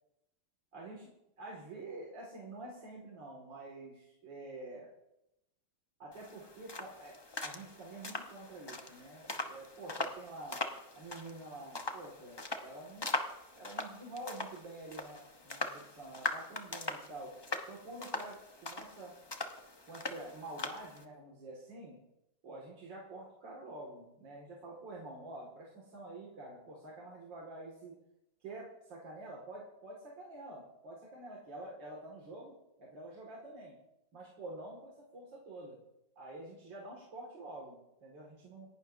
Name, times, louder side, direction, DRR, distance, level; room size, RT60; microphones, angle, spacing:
voice 1, 0.7-1.1 1.4-4.9 6.0-10.6 10.9-13.2 13.5-17.3 17.7-19.1 19.9-22.0 22.4-27.9 28.4-32.5 32.8-33.7 34.1-35.8 36.2-38.7, right 2 dB, 85° right, -3 dB, 2.9 m, -48 dB
sound 1, 6.1-21.0, left 2 dB, 25° left, 0.6 m, -41 dB
27.5 x 11.0 x 2.7 m, 0.88 s
omnidirectional pair, 1.9 m